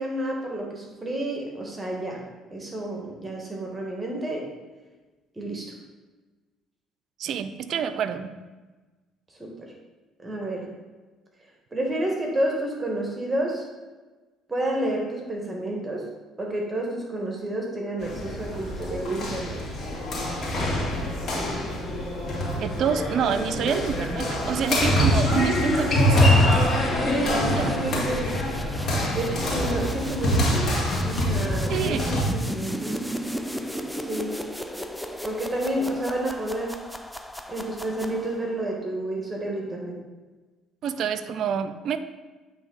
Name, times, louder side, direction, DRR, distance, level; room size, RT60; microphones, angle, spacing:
voice 1, 0.0-2.2 2.5-4.5 5.3-5.7 9.3-9.5 10.2-10.7 11.7-13.6 14.5-16.0 16.4-19.6 27.0-28.3 29.1-30.7 31.0-33.0 34.0-34.4 35.2-36.7 37.5-40.0, right 1 dB, 20° right, -1 dB, 1.7 m, -30 dB
voice 2, 7.2-8.3 22.6-26.7 27.4-27.8 31.7-32.2 40.8-42.0, right 7 dB, 65° right, 11 dB, 0.4 m, -28 dB
sound 1, 18.0-32.2, left 1 dB, 55° left, 2.1 m, -24 dB
sound 2, 24.3-38.6, equal, 5° left, 0.5 m, -36 dB
8.7 x 3.5 x 4.0 m, 1.2 s
supercardioid pair, 75°, 0 cm